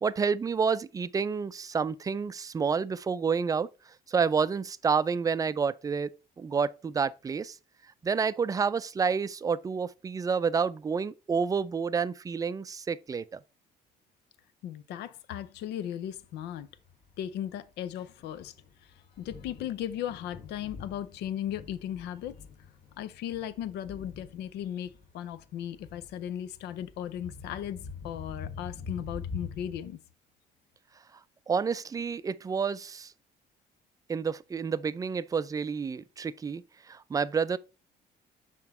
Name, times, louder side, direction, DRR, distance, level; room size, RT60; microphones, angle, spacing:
voice 1, 0.0-3.7 4.1-6.1 6.4-7.6 8.0-13.4 31.5-33.1 34.1-37.6, right 5 dB, 20° right, 0.4 m, -29 dB
voice 2, 14.6-16.7 17.2-18.5 18.8-22.4 23.0-30.0, left 10 dB, 80° left, 0.7 m, -37 dB
Thunder, 16.2-29.9, left 5 dB, 55° left, 2.0 m, -45 dB
5.9 x 4.5 x 4.2 m
cardioid pair, 110°, 17 cm